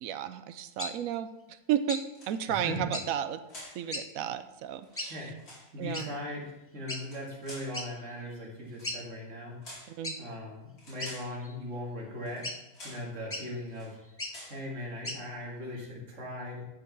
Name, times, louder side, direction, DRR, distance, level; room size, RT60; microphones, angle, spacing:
voice 1, 0.0-2.0 2.3-3.4 3.7-5.2 5.8-6.1 9.9-10.2, right 10 dB, 75° right, 11 dB, 1.0 m, -33 dB
sound 1, 0.8-0.9 1.9-2.1 2.9-3.1 3.9-4.1 5.0-5.1 5.9-6.1 6.9-7.0 7.7-7.9 8.3-8.4 8.8-9.0 10.0-10.2 11.0-11.5 12.4-12.6 13.3-13.5 14.1-14.4 15.0-15.2, left 1 dB, 15° left, 0.4 m, -36 dB
sound 2, 2.1-2.6 3.5-3.8 4.8-5.7 6.9-7.8 8.7-9.0 9.6-10.0 10.8-11.4 12.2-12.5 12.7-13.1 13.7-13.9 14.3-14.6, left 1 dB, 80° left, 3.2 m, -49 dB
voice 2, 2.5-2.9 3.7-3.8 5.1-5.4 5.7-9.7 10.2-12.5 12.8-14.0 14.4-16.6, left 1 dB, 55° right, -3 dB, 2.4 m, -39 dB
10.5 x 5.0 x 4.7 m, 0.97 s
omnidirectional pair, 1.6 m